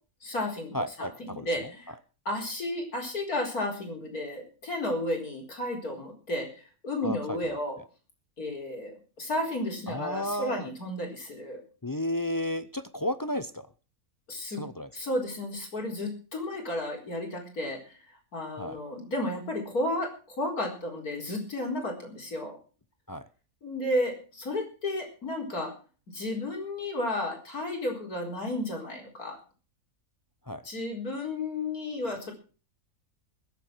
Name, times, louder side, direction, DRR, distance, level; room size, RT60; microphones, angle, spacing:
voice 1, 0.2-1.9 2.2-7.8 8.4-11.6 14.3-14.6 14.9-22.6 23.6-25.7 26.1-29.4 30.6-32.3, left 1 dB, 85° left, 1 dB, 4.8 m, -33 dB
voice 2, 0.7-1.7 7.0-7.6 9.9-10.7 11.8-13.7 14.6-14.9 18.6-18.8 23.1-23.3 30.5-30.7, left 1 dB, 35° left, 12 dB, 0.3 m, -33 dB
21.0 x 7.9 x 6.1 m, 0.37 s
omnidirectional pair, 1.5 m